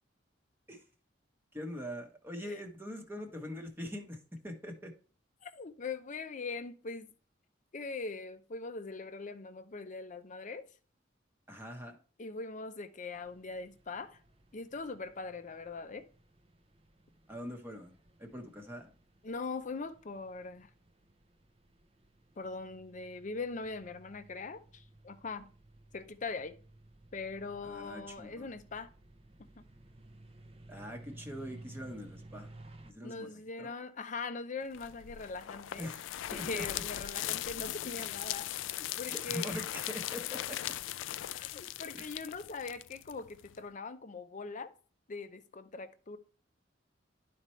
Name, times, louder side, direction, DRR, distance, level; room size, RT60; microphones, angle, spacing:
voice 1, 1.5-4.9 11.5-12.0 17.3-18.9 27.6-28.5 30.7-32.5 32.8-33.7 35.8-36.0 36.3-36.8 39.0-40.6 41.9-42.1, equal, 10° right, 1.0 m, -43 dB
voice 2, 5.4-7.1 7.7-10.7 12.2-14.2 14.5-16.1 19.2-20.7 22.4-25.5 25.9-26.5 27.1-28.9 33.0-35.9 36.3-38.5 38.8-39.5 41.3-44.7 45.1-46.2, left 4 dB, 40° left, 0.6 m, -41 dB
sound 1, 13.1-32.9, right 2 dB, 30° right, 0.6 m, -56 dB
sound 2, 34.7-43.6, left 13 dB, 80° left, 0.3 m, -39 dB
11.5 x 4.3 x 3.1 m
head